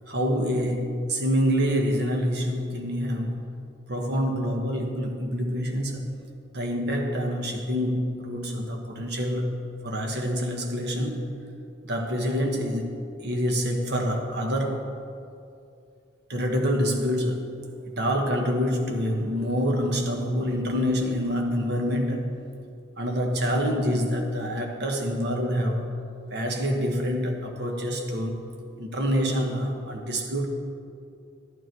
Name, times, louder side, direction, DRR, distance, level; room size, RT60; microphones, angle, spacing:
voice 1, 0.1-3.4 3.9-6.1 6.5-9.5 9.8-11.3 11.8-12.9 13.2-14.9 16.3-17.6 17.9-22.3 23.0-25.9 26.3-28.5 28.8-30.5, equal, 55° right, 1 dB, 1.2 m, -26 dB
13.0 x 9.3 x 4.6 m, 2.5 s
head